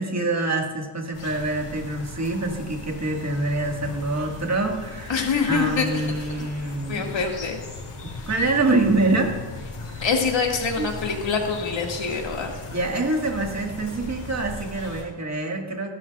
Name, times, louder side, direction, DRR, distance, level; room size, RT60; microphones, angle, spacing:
voice 1, 0.0-7.3 8.3-9.5 9.9-10.0 10.8-10.9 12.7-15.9, right 2 dB, 30° right, 2 dB, 1.7 m, -25 dB
sound 1, 1.1-15.0, left 2 dB, 80° left, 3.9 m, -38 dB
voice 2, 5.1-5.9 6.2-6.3 6.9-7.6 10.0-12.6, left 5 dB, 60° left, 1 dB, 2.0 m, -25 dB
16.0 x 12.0 x 2.4 m, 1.4 s
wide cardioid pair, 95°, 50 cm